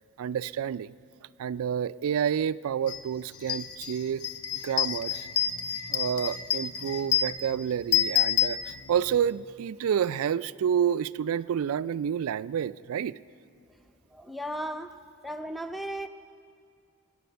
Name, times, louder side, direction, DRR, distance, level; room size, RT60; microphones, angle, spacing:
voice 1, 0.2-0.9 1.4-4.2 4.6-5.3 5.9-13.2, right 8 dB, 65° right, 18 dB, 0.3 m, -29 dB
sound 1, 2.9-3.0 3.3-9.2, left 9 dB, 70° left, 0.8 m, -29 dB
voice 2, 14.1-14.9 15.2-16.1, equal, ahead, 8 dB, 0.5 m, -35 dB
23.0 x 8.7 x 6.8 m, 2.2 s
head